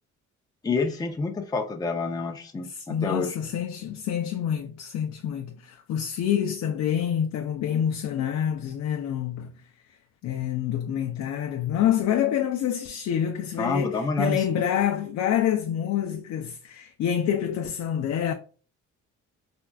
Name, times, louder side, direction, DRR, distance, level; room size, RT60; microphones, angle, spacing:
voice 1, 0.6-3.4 13.6-14.6, left 4 dB, 15° left, 0.5 m, -28 dB
voice 2, 2.7-9.5 10.2-18.3, left 9 dB, 65° left, 0.5 m, -27 dB
4.4 x 2.3 x 2.2 m
cardioid pair, 90°, 30 cm